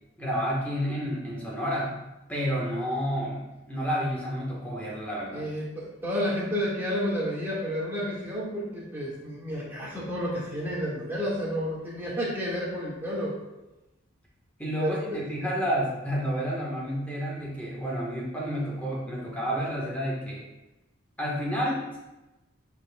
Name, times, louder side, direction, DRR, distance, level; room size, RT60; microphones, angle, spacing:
voice 1, 0.2-2.0 2.3-5.5 14.6-20.5 21.2-22.0, equal, 5° left, -4 dB, 1.3 m, -30 dB
voice 2, 5.3-13.4 14.8-15.2, equal, 10° right, -7 dB, 1.8 m, -31 dB
9.6 x 4.5 x 2.3 m, 1.0 s
head